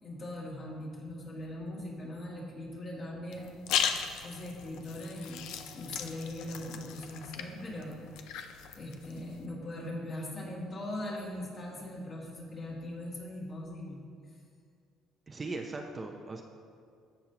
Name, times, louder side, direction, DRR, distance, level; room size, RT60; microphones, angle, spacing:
voice 1, 0.0-3.5 4.2-5.4 5.7-8.0 8.7-14.0, left 1 dB, 40° left, -4 dB, 2.2 m, -40 dB
sound 1, 3.3-9.4, left 8 dB, 80° left, 0.5 m, -37 dB
voice 2, 15.3-16.4, right 3 dB, 25° right, 3 dB, 0.6 m, -39 dB
14.0 x 5.4 x 3.0 m, 2.2 s
cardioid pair, 100°, 0 cm